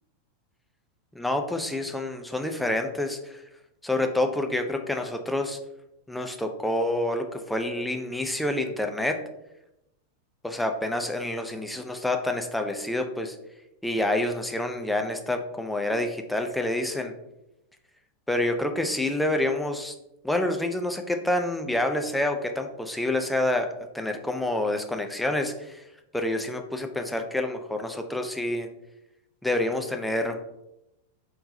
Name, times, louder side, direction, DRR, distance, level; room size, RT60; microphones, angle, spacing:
voice 1, 1.1-3.4 3.8-5.6 6.1-9.2 10.4-13.4 13.8-17.1 18.3-19.9 20.2-23.7 23.9-25.8 26.1-28.7 29.4-30.4, left 1 dB, 5° left, 4 dB, 0.5 m, -28 dB
4.2 x 3.7 x 2.7 m, 0.88 s
figure-of-eight pair, 90°, 0 cm